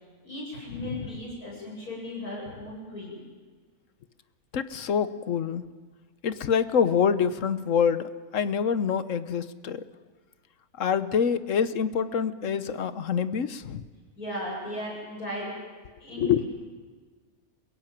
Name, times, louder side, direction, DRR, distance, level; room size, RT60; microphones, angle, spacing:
voice 1, 0.2-3.3 14.2-15.5 16.0-16.4, left 1 dB, 85° left, -3 dB, 8.7 m, -36 dB
voice 2, 4.5-5.6 6.2-9.8 10.8-13.8 16.2-16.4, left 7 dB, 60° left, 14 dB, 1.3 m, -26 dB
28.5 x 16.5 x 9.1 m, 1.5 s
omnidirectional pair, 1.5 m